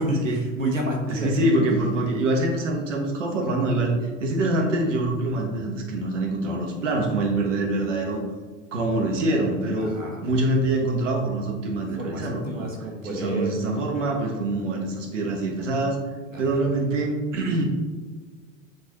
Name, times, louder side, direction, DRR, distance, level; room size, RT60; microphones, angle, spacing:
voice 1, 0.0-1.7 9.8-10.3 12.0-13.5 16.3-16.4, equal, 90° right, -1 dB, 1.3 m, -29 dB
voice 2, 1.1-8.2 8.7-9.9 10.2-12.7 13.0-16.0 16.4-17.6, right 2 dB, 70° right, 0 dB, 1.3 m, -25 dB
9.2 x 4.0 x 3.0 m, 1.4 s
figure-of-eight pair, 85°, 38 cm